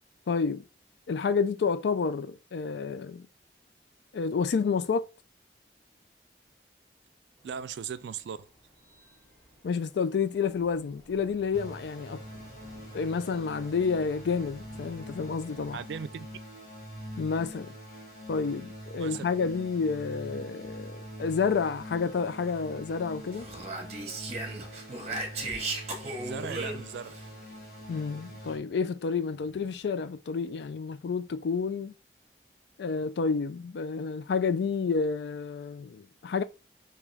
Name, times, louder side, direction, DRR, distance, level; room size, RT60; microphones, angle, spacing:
voice 1, 0.3-0.6 1.1-3.3 4.1-5.0 9.6-12.2 12.9-15.8 17.2-17.8 18.3-23.5 27.9-31.9 32.8-36.4, left 5 dB, 70° left, 0.4 m, -29 dB
sound 1, 7.4-15.8, left 1 dB, 10° left, 1.1 m, -55 dB
voice 2, 7.4-8.5 15.7-16.3 19.0-19.3 26.2-27.2, right 7 dB, 75° right, 0.3 m, -38 dB
sound 2, 11.5-28.6, equal, 55° left, 1.8 m, -44 dB
Speech, 23.3-27.2, right 2 dB, 35° right, 0.8 m, -36 dB
3.5 x 3.0 x 3.2 m
head